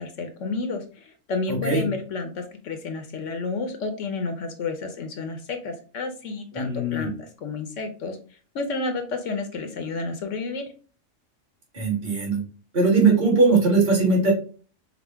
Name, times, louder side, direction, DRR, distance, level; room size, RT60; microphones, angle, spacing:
voice 1, 0.0-8.2 8.5-10.7, left 3 dB, 70° left, 6 dB, 1.0 m, -31 dB
voice 2, 1.5-1.9 6.5-7.1 11.7-12.4 12.7-14.3, right 3 dB, 35° right, -3 dB, 1.6 m, -20 dB
4.9 x 2.1 x 3.4 m, 0.39 s
omnidirectional pair, 1.4 m